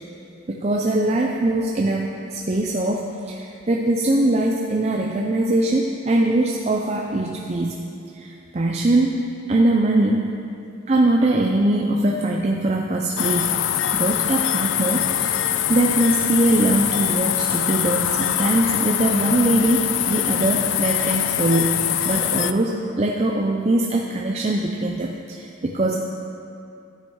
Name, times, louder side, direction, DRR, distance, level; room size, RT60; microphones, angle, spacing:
voice 1, 0.5-7.7 8.1-9.2 9.5-10.3 10.9-13.6 13.9-21.7 22.0-26.0, right 1 dB, 30° right, 0 dB, 0.5 m, -22 dB
sound 1, 13.2-22.5, left 11 dB, 60° left, 0.4 m, -23 dB
13.0 x 8.0 x 4.7 m, 2.6 s
head